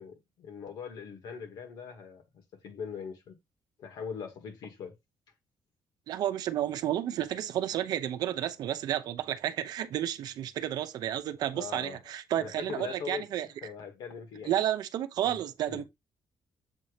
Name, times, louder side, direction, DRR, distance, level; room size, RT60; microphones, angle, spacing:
voice 1, 0.0-2.2 2.6-3.4 3.8-5.0 11.5-12.0 12.4-13.3 13.6-14.5 15.2-15.4 15.7-15.8, left 6 dB, 70° left, 1.9 m, -41 dB
voice 2, 6.1-13.5 14.5-15.8, right 11 dB, 65° right, 0.8 m, -31 dB
7.4 x 2.9 x 5.0 m
cardioid pair, 165°, 7 cm